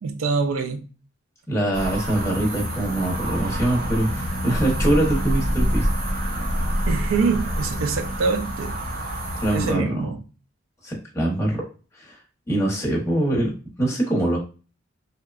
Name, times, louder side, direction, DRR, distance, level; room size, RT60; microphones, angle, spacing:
voice 1, 0.0-0.8 6.9-8.7 9.5-10.2, right 4 dB, 75° right, 0.4 m, -25 dB
voice 2, 1.5-5.9 9.4-10.0 10.8-11.6 12.0-12.2 12.5-13.5 13.8-14.4, right 1 dB, 15° left, 0.8 m, -23 dB
sound 1, 1.7-9.7, equal, 45° right, 0.7 m, -26 dB
2.8 x 2.1 x 2.3 m
head